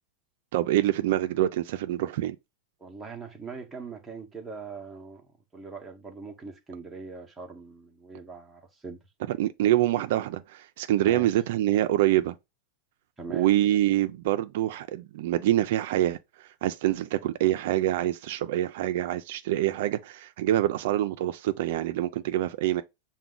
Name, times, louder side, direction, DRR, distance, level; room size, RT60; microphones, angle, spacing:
voice 1, 0.5-2.4 9.3-12.4 13.3-22.8, right 13 dB, 65° right, 0.3 m, -26 dB
voice 2, 2.8-9.0 11.0-11.3 13.2-13.5, right 4 dB, 10° right, 0.7 m, -41 dB
5.8 x 2.1 x 3.7 m
supercardioid pair, 155°, 0 cm